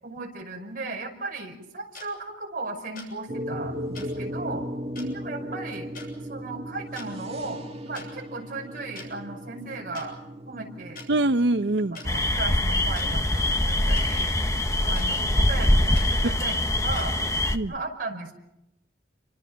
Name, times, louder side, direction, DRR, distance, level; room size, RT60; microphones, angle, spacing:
voice 1, 0.0-4.7 5.1-5.9 6.3-10.2 10.5-11.0 12.0-14.3 14.8-17.2 17.7-18.3, right 3 dB, 50° right, 1 dB, 5.6 m, -36 dB
sound 1, 1.9-2.1 3.0-3.1 3.9-4.1 5.0-5.1 5.9-6.1 6.8-7.1 7.9-8.1 9.0-9.1 9.9-10.1 11.0-11.1 11.9-12.1 12.9-13.1 13.9-14.1 14.9-15.1 15.9-16.1 16.9-17.1, left 3 dB, 55° left, 7.4 m, -42 dB
sound 2, 3.3-16.6, equal, 35° right, 1.9 m, -38 dB
voice 2, 11.1-12.0 17.5-17.7, right 2 dB, 70° right, 12 dB, 0.8 m, -24 dB
sound 3, 12.0-17.6, left 1 dB, 15° left, 1.1 m, -23 dB
29.5 x 25.0 x 5.9 m, 0.86 s
head